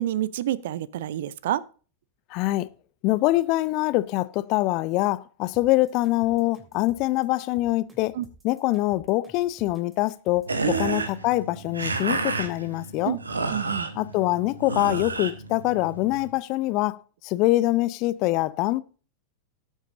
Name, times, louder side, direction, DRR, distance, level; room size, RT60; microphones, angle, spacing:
voice 1, 0.0-1.6 8.1-8.3 10.6-11.1 13.0-13.2 13.5-13.9, right 12 dB, 55° right, 0.5 m, -28 dB
voice 2, 2.3-2.7 3.0-8.2 8.4-13.2 14.0-17.0 17.2-18.8, left 18 dB, 40° left, 0.6 m, -24 dB
sound 1, 5.5-10.9, equal, 15° right, 2.7 m, -52 dB
sound 2, 10.4-16.3, right 3 dB, 75° right, 1.3 m, -31 dB
18.0 x 7.3 x 2.6 m
figure-of-eight pair, 90°, 0 cm